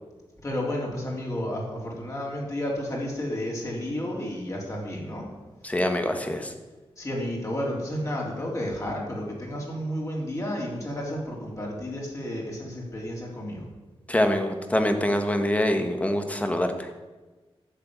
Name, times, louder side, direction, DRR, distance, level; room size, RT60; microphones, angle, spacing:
voice 1, 0.4-5.3 7.0-13.7, left 1 dB, 30° left, -2 dB, 3.8 m, -31 dB
voice 2, 5.6-6.5 14.1-16.9, left 1 dB, 15° left, 6 dB, 1.4 m, -25 dB
11.5 x 7.7 x 8.7 m, 1.2 s
wide cardioid pair, 135°, 10 cm